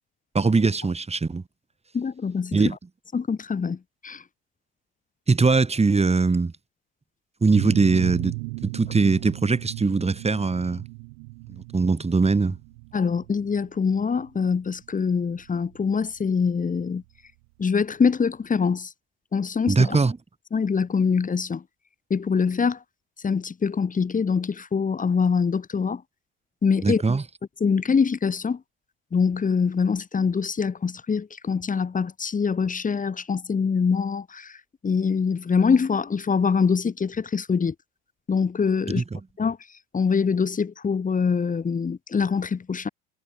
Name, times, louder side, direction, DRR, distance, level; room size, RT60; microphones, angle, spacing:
voice 1, 0.3-1.4 2.5-2.7 5.3-6.5 7.4-8.4 8.6-10.8 11.5-12.6 19.7-20.2 26.8-27.2 39.0-39.2, right 4 dB, 15° right, 4.5 m, -21 dB
voice 2, 1.9-2.6 3.1-3.8 4.0-4.2 12.9-17.0 17.6-18.9 19.3-20.0 20.5-21.6 22.1-22.8 23.2-26.0 26.6-27.0 27.6-28.6 29.1-34.6 34.8-37.7 38.3-39.0 39.4-39.6 39.9-42.9, left 5 dB, 20° left, 1.6 m, -24 dB
sound 1, 7.5-16.9, right 32 dB, 75° right, 2.5 m, -36 dB
hypercardioid pair, 85°, 36 cm